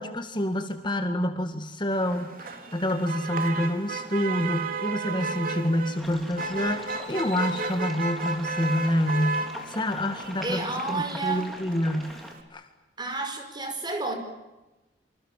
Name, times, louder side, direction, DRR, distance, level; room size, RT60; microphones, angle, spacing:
voice 1, 0.0-12.2 12.5-12.6, left 1 dB, 25° left, 6 dB, 1.9 m, -28 dB
Motor vehicle (road), 1.9-12.4, right 3 dB, 55° right, 3.3 m, -34 dB
sound 1, 6.0-12.3, left 1 dB, ahead, 3.7 m, -44 dB
voice 2, 10.4-11.5 13.0-14.1, right 3 dB, 25° right, 6 dB, 5.2 m, -30 dB
26.5 x 26.0 x 7.4 m, 1.0 s
head